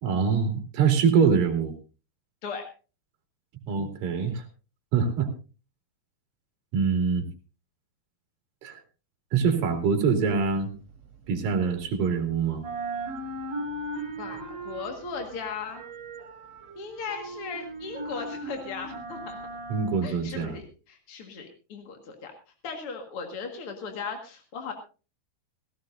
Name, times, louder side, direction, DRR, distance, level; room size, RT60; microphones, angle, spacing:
voice 1, 0.0-1.7 3.7-4.4 4.9-5.3 6.7-7.3 8.6-8.8 9.3-10.7 11.3-12.6 19.7-20.6, right 6 dB, 55° right, 4 dB, 4.0 m, -24 dB
sound 1, 9.4-12.2 12.5-20.7, right 2 dB, 40° right, 3.9 m, -38 dB
voice 2, 14.2-15.8 16.7-19.4 20.0-22.3 22.6-24.7, left 5 dB, 50° left, 4 dB, 1.7 m, -37 dB
17.5 x 17.0 x 2.6 m, 0.34 s
omnidirectional pair, 4.9 m